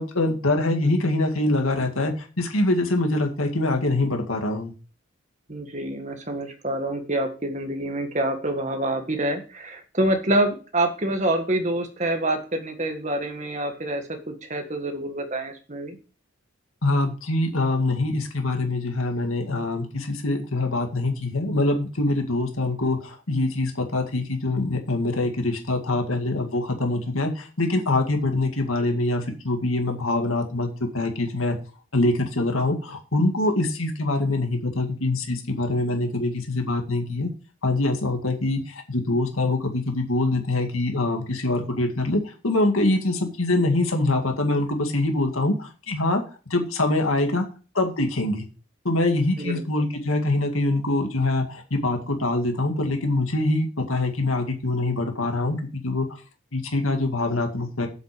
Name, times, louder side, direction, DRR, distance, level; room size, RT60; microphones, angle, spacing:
voice 1, 0.0-4.7 16.8-31.6 31.9-37.3 37.6-46.2 46.5-47.5 47.7-48.5 48.8-56.1 56.5-57.9, left 2 dB, 90° left, 3 dB, 2.1 m, -24 dB
voice 2, 5.5-16.0 49.4-49.6, right 1 dB, 35° right, 4 dB, 1.7 m, -26 dB
8.0 x 7.9 x 5.0 m, 0.35 s
head